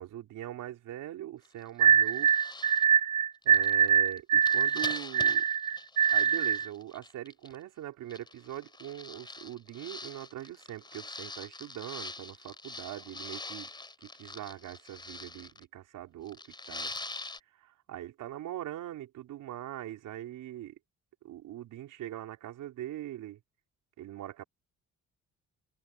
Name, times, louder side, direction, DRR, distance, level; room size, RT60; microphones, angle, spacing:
voice 1, 0.0-2.3 3.4-5.4 6.1-13.7 14.0-16.9 17.6-20.8 21.2-23.4 24.0-24.4, right 13 dB, 90° right, 4.6 m, -42 dB
sound 1, 1.4-1.6 1.9-2.8 3.4-7.6 8.1-15.6 16.3-17.4, left 3 dB, 15° left, 5.1 m, -44 dB
sound 2, 1.8-6.7, right 8 dB, 70° right, 1.9 m, -24 dB
cardioid pair, 160°, 30 cm